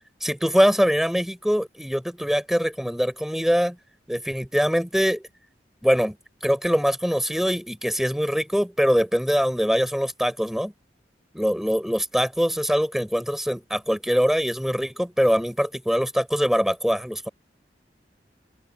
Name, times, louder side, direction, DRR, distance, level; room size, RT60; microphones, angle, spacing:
voice 1, 0.2-3.8 4.1-5.2 5.8-6.2 6.4-10.7 11.3-17.3, equal, ahead, 5.4 m, -23 dB
open air
head